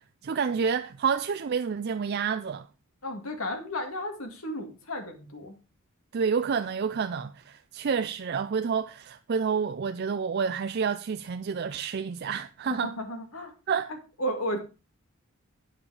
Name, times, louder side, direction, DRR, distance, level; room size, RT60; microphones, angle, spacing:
voice 1, 0.2-2.7 6.1-12.9 13.7-13.9, right 6 dB, 50° right, 0.4 m, -29 dB
voice 2, 3.0-5.5 12.7-13.5 14.2-14.6, equal, 80° left, 2.2 m, -33 dB
8.8 x 7.5 x 4.8 m
head